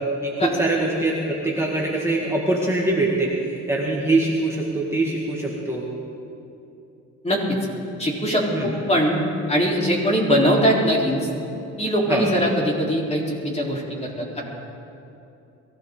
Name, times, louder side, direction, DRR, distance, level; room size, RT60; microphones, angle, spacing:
voice 1, 0.2-3.3 3.7-5.8 8.5-8.7 12.1-12.3, right 2 dB, 10° right, -4 dB, 2.0 m, -23 dB
voice 2, 7.2-7.6 8.0-9.2 9.5-11.2 11.8-14.4, equal, 20° left, -3 dB, 3.9 m, -21 dB
22.5 x 15.5 x 3.9 m, 2.8 s
cardioid pair, 90°, 30 cm